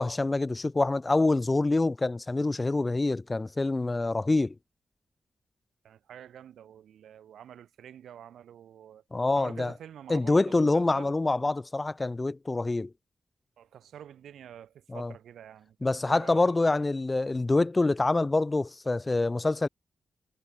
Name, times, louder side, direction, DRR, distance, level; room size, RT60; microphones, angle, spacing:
voice 1, 0.0-4.5 9.1-9.7 10.1-12.9 14.9-15.1 15.8-19.7, left 2 dB, 30° left, 0.3 m, -26 dB
voice 2, 5.8-9.0 9.4-11.1 13.6-16.6, right 9 dB, 85° right, 5.6 m, -48 dB
supercardioid pair, 45°, 0 cm